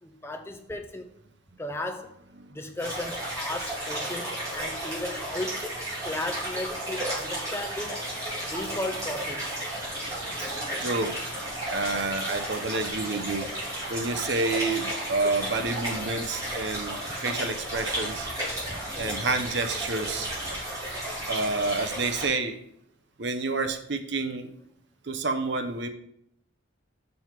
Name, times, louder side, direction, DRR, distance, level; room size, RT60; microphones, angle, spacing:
voice 1, 0.0-1.1 1.6-2.1 2.5-5.6 6.0-8.1 8.5-9.5 11.9-12.1 18.7-19.3, left 1 dB, 10° left, 5 dB, 0.4 m, -35 dB
sound 1, 2.8-22.2, right 1 dB, 15° right, 3.1 m, -33 dB
voice 2, 10.8-11.2 11.7-13.5 13.9-17.0 17.2-18.3 19.0-20.3 21.3-22.6 23.2-24.5 25.0-25.9, right 3 dB, 55° right, 8 dB, 0.7 m, -29 dB
5.9 x 5.4 x 4.6 m, 0.74 s
head